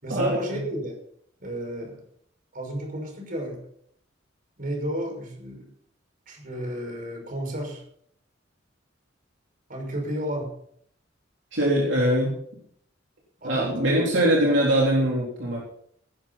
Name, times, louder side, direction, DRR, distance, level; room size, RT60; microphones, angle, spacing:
voice 1, 0.0-0.9 1.4-2.0 2.5-3.6 4.6-5.7 6.3-7.8 9.7-10.5 13.4-14.3, equal, 50° right, 1 dB, 5.9 m, -32 dB
voice 2, 11.5-12.4 13.4-15.6, right 1 dB, 70° right, -4 dB, 3.8 m, -22 dB
19.0 x 11.5 x 4.3 m, 0.66 s
head